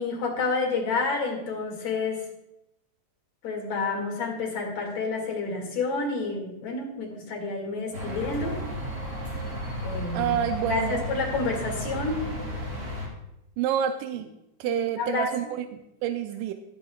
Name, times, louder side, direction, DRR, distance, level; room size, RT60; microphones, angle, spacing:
voice 1, 0.0-2.2 3.4-8.6 9.8-10.3 10.7-12.2 14.6-15.3, left 3 dB, 60° left, 0 dB, 3.2 m, -29 dB
sound 1, 7.9-13.1, equal, 25° right, 4.5 m, -33 dB
voice 2, 10.1-11.0 13.6-14.3 14.6-16.5, right 9 dB, 90° right, 7 dB, 2.2 m, -28 dB
18.5 x 8.8 x 2.3 m, 0.86 s
omnidirectional pair, 3.6 m